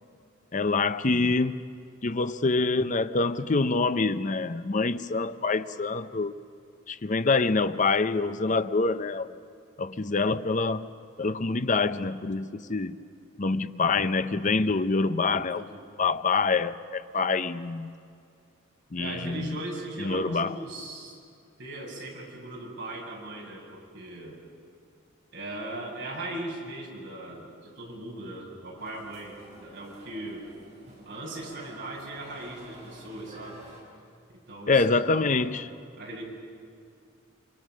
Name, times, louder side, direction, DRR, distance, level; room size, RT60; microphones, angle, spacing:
voice 1, 0.5-1.7 2.0-6.4 6.9-9.4 9.8-10.9 11.2-13.0 13.4-15.6 16.0-17.9 18.9-19.6 20.0-20.5 34.7-35.7, left 3 dB, 40° left, 0.7 m, -26 dB
voice 2, 19.0-21.2 21.6-24.4 25.3-30.5 31.0-33.6 34.3-35.5 36.0-36.2, right 1 dB, 65° right, 6.5 m, -39 dB
sound 1, 28.8-33.8, right 1 dB, 35° right, 5.9 m, -50 dB
28.5 x 25.0 x 6.3 m
head